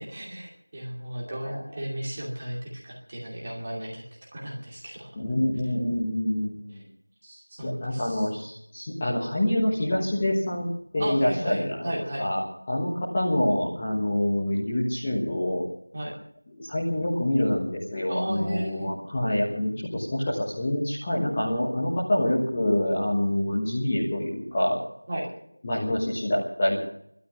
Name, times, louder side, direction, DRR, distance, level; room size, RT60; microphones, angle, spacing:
voice 1, 0.0-4.0 4.3-5.1 6.7-6.8 7.2-8.3 11.0-12.3 15.9-16.2 18.1-18.9 25.1-25.3, right 1 dB, 15° right, -3 dB, 2.5 m, -34 dB
voice 2, 5.2-6.8 7.6-10.7 10.9-11.9 12.2-12.4 12.7-15.6 16.5-24.8 25.6-26.8, left 1 dB, 10° left, -7 dB, 1.4 m, -26 dB
12.5 x 12.0 x 9.6 m, 0.68 s
figure-of-eight pair, 175°, 0 cm